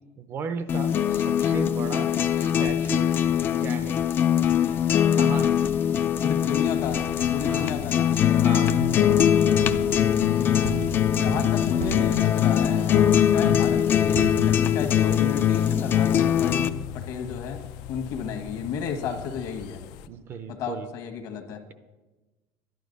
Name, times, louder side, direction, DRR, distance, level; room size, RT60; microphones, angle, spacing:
voice 1, 0.2-2.1 2.4-3.1 3.6-4.0 4.9-5.6 7.5-7.7 8.4-8.9 13.4-13.7 20.1-20.9, right 6 dB, 30° right, 12 dB, 0.5 m, -36 dB
sound 1, 0.7-16.7, left 9 dB, 30° left, 0.4 m, -22 dB
voice 2, 6.2-7.0 7.3-8.1 9.9-10.1 11.1-17.6 17.9-19.8 20.5-21.6, left 7 dB, 50° left, 5 dB, 1.4 m, -33 dB
sound 2, 6.6-20.1, left 11 dB, 75° left, 0.6 m, -36 dB
sound 3, 8.6-13.9 14.2-15.2, right 6 dB, 85° right, 0.7 m, -36 dB
11.5 x 11.5 x 5.3 m, 1.2 s
cardioid pair, 180°, 8 cm